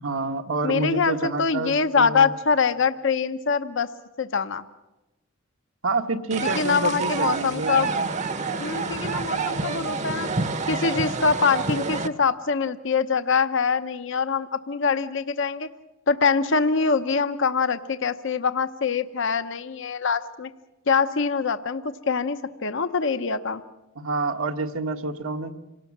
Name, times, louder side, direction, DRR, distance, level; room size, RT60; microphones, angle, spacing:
voice 1, 0.0-2.3 5.8-7.9 23.9-25.6, right 3 dB, 75° right, 6 dB, 1.4 m, -28 dB
voice 2, 0.6-3.9 4.2-4.6 6.4-7.9 8.6-10.3 10.7-15.7 16.1-20.5 20.9-23.6, left 5 dB, 60° left, 10 dB, 0.8 m, -24 dB
sound 1, 6.3-12.1, right 4 dB, 35° right, 0.9 m, -28 dB
27.0 x 18.5 x 7.3 m, 1.0 s
head